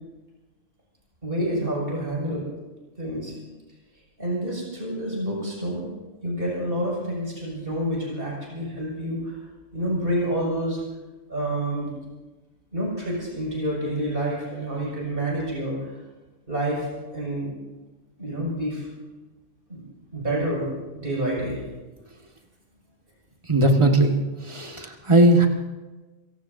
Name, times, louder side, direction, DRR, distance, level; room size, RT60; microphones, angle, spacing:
voice 1, 1.2-2.5 3.0-3.3 4.2-5.9 6.2-9.3 9.7-10.8 11.3-11.9 12.7-15.9 16.5-16.9 17.1-17.5 18.2-18.9 19.7-19.8 20.1-20.7 20.9-21.6, right 1 dB, 45° right, -4 dB, 6.5 m, -28 dB
voice 2, 23.5-25.5, right 2 dB, 25° right, 3 dB, 1.7 m, -18 dB
27.5 x 17.5 x 2.7 m, 1.2 s
omnidirectional pair, 1.3 m